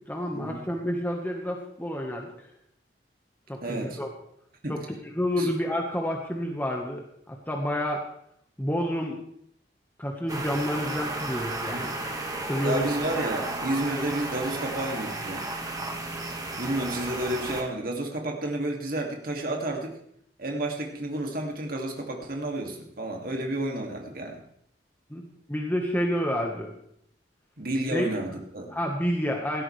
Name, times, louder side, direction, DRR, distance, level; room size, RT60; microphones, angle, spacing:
voice 1, 0.1-2.5 3.5-4.1 4.7-8.1 8.6-9.2 10.0-12.0 12.5-12.9 25.1-26.7 27.9-28.1 28.7-29.6, equal, 10° left, 0 dB, 1.4 m, -29 dB
voice 2, 3.6-4.0 4.6-4.9 5.4-5.5 11.7-11.9 12.6-15.5 16.6-20.0 20.4-24.4 27.6-28.7, right 1 dB, 55° right, 1 dB, 2.5 m, -31 dB
sound 1, 10.3-17.6, right 2 dB, 20° right, 1.7 m, -33 dB
17.5 x 13.5 x 3.4 m, 0.71 s
head